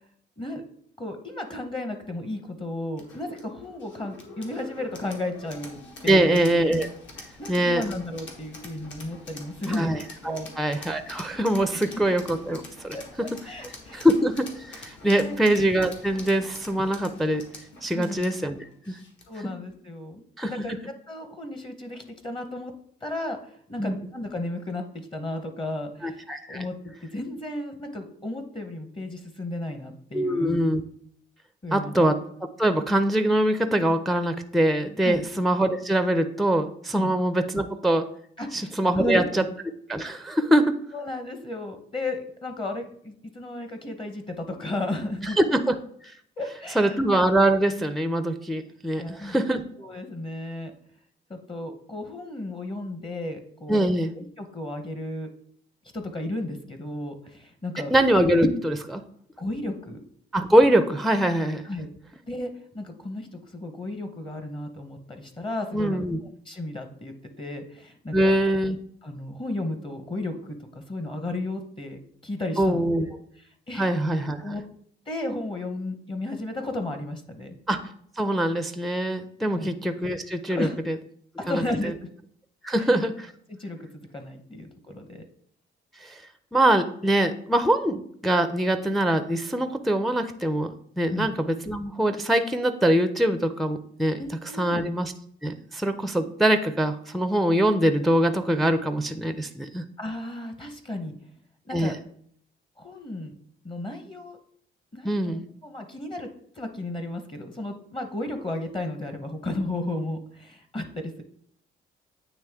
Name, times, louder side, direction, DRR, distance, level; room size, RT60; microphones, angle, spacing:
voice 1, 1.0-6.5 7.4-9.9 10.2-10.5 11.7-12.1 12.9-14.1 15.2-15.4 17.9-18.2 19.3-20.7 21.1-22.7 23.0-24.8 25.1-26.2 26.5-26.8 27.1-30.6 31.6-32.0 35.0-35.2 36.9-37.1 38.4-38.7 39.0-39.2 40.9-45.4 46.4-47.0 49.0-49.4 49.8-50.7 51.3-53.8 54.1-55.3 55.9-57.9 59.4-60.0 61.6-61.9 62.3-66.0 66.4-68.4 69.0-73.9 74.4-74.6 75.1-77.6 79.4-79.7 80.5-80.8 81.4-82.1 82.7-82.9 83.5-83.8 84.1-85.2 91.1-91.3 94.2-94.8 100.0-101.3 101.6-102.0 102.8-103.3 103.6-104.4 104.9-106.3 106.5-111.2, left 1 dB, 25° left, 7 dB, 0.8 m, -34 dB
sound 1, 3.0-19.5, left 3 dB, 70° left, 1.4 m, -45 dB
voice 2, 6.1-6.9 7.5-7.8 9.8-10.0 10.3-13.3 13.9-17.4 17.8-19.0 20.4-20.8 23.8-23.9 26.0-26.7 30.1-30.8 31.7-32.2 32.6-38.1 38.5-39.4 39.9-40.8 45.2-45.7 46.0-46.1 46.8-49.6 53.7-54.1 57.9-59.0 60.3-61.6 65.7-66.2 68.1-68.8 72.6-73.1 73.8-74.4 77.7-77.8 78.2-80.9 81.5-81.9 82.6-83.3 86.0-86.2 86.5-94.2 94.6-95.1 95.4-99.8 101.7-102.0 105.0-105.4, right 1 dB, ahead, 8 dB, 0.4 m, -23 dB
8.9 x 3.0 x 3.5 m, 0.63 s
cardioid pair, 90°, 20 cm